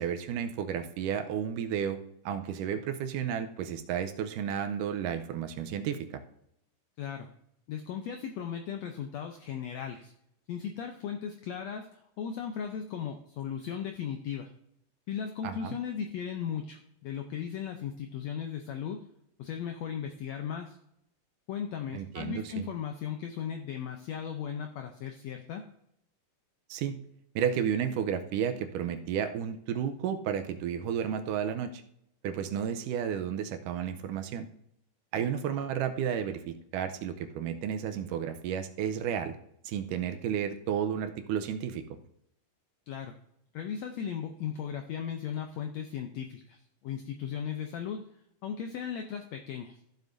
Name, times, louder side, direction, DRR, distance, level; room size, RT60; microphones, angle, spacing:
voice 1, 0.0-2.0 2.3-6.2 15.4-15.8 21.9-22.7 26.7-27.0 27.4-31.8 32.2-34.5 35.1-39.4 39.6-41.8, right 8 dB, 80° right, 8 dB, 2.1 m, -32 dB
voice 2, 7.0-7.3 7.7-10.1 10.5-14.5 15.1-19.0 19.4-20.8 21.5-25.6 42.9-43.2 43.5-48.0 48.4-49.8, left 8 dB, 80° left, 5 dB, 1.5 m, -37 dB
14.5 x 7.3 x 2.6 m, 0.76 s
omnidirectional pair, 3.9 m